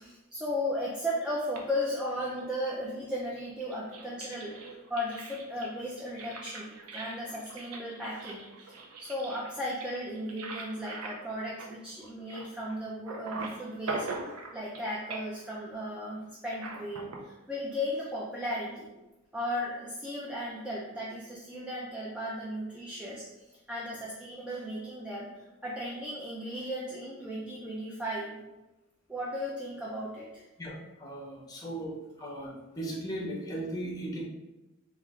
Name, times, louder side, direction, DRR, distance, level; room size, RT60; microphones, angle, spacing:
voice 1, 0.0-14.1 14.5-18.9 19.3-28.4 29.1-30.4, equal, 5° right, -5 dB, 0.3 m, -36 dB
sound 1, 1.5-2.8 3.4-12.8 13.1-14.8 15.1-15.5 16.5-17.2, right 3 dB, 75° right, 0.5 m, -42 dB
voice 2, 30.6-31.9 32.2-34.2, right 1 dB, 15° left, -3 dB, 0.7 m, -37 dB
3.0 x 2.4 x 3.5 m, 1.0 s
head